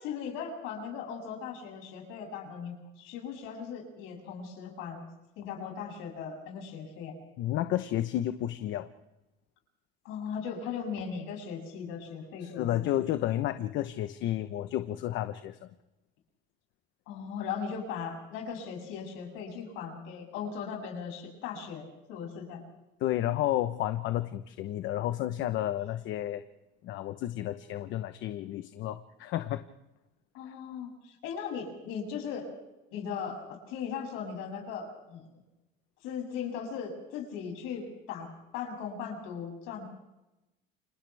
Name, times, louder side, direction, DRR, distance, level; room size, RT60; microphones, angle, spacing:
voice 1, 0.0-5.0 5.4-7.1 10.0-12.7 17.1-22.6 30.3-32.5 32.9-35.4 36.0-38.3 38.5-39.9, left 6 dB, 85° left, 1 dB, 7.6 m, -38 dB
voice 2, 7.4-8.9 12.4-15.7 23.0-26.4 26.8-29.6, left 13 dB, 65° left, 9 dB, 1.1 m, -31 dB
30.0 x 25.5 x 3.5 m, 0.97 s
cardioid pair, 120°, 21 cm